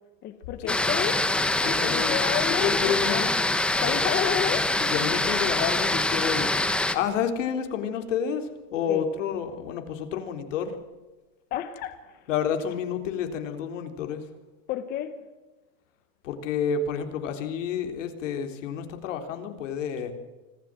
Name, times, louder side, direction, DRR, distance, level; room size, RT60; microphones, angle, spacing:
voice 1, 0.2-3.3 3.8-4.8 8.9-9.0 11.5-12.3 14.7-15.1, left 9 dB, 25° left, 1.2 m, -31 dB
sound 1, 0.7-6.9, left 2 dB, 5° left, 1.0 m, -24 dB
voice 2, 1.6-2.2 2.5-3.3 4.8-6.5 6.9-10.8 12.3-14.3 16.2-20.1, left 7 dB, 75° left, 3.8 m, -29 dB
25.5 x 15.5 x 7.6 m
supercardioid pair, 175°, 38 cm